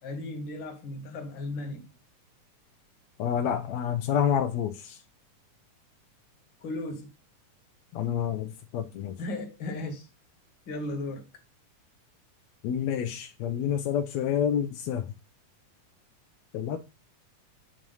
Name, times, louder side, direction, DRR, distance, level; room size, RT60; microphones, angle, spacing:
voice 1, 0.0-1.9 6.6-7.1 9.2-10.1 10.7-11.3, left 2 dB, 45° left, 1.7 m, -35 dB
voice 2, 3.2-4.7 7.9-8.5 8.7-9.1 12.6-15.0 16.5-16.8, left 9 dB, 85° left, 1.5 m, -28 dB
8.7 x 3.1 x 5.4 m
omnidirectional pair, 3.8 m